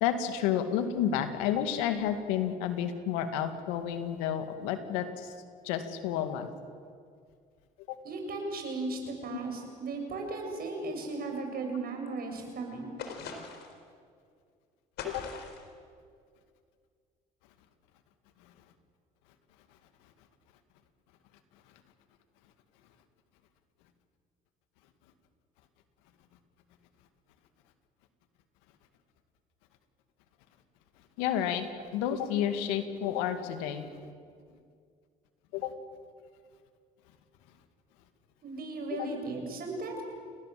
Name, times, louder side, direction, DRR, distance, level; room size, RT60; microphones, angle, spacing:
voice 1, 0.0-5.3 5.6-6.5 7.9-8.0 9.3-9.4 15.0-15.2 31.2-33.9 35.5-35.7 38.9-39.2, left 9 dB, 85° left, 8 dB, 2.2 m, -31 dB
voice 2, 8.0-12.9 38.4-40.0, right 3 dB, 55° right, 3 dB, 7.2 m, -36 dB
sound 1, 13.0-13.8 15.0-15.7, left 5 dB, 70° left, 4.1 m, -41 dB
29.0 x 20.0 x 7.7 m, 2.2 s
supercardioid pair, 70°, 18 cm